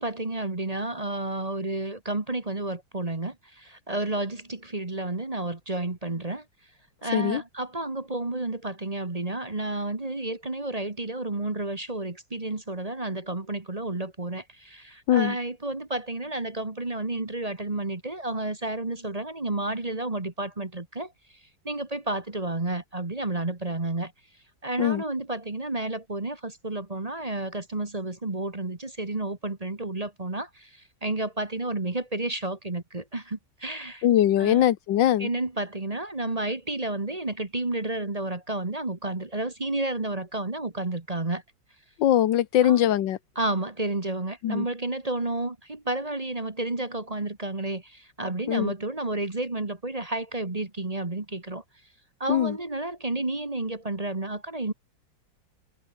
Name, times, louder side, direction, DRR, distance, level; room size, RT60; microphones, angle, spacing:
voice 1, 0.0-6.4 7.0-21.1 21.6-24.1 24.6-34.0 34.4-34.7 35.2-41.4 42.6-42.8 43.3-51.6 52.2-54.7, right 2 dB, 20° right, 1.6 m, -31 dB
voice 2, 34.0-35.3 42.0-43.2 44.4-44.7 48.5-48.7 52.3-52.6, left 11 dB, 85° left, 1.6 m, -22 dB
omnidirectional pair, 2.0 m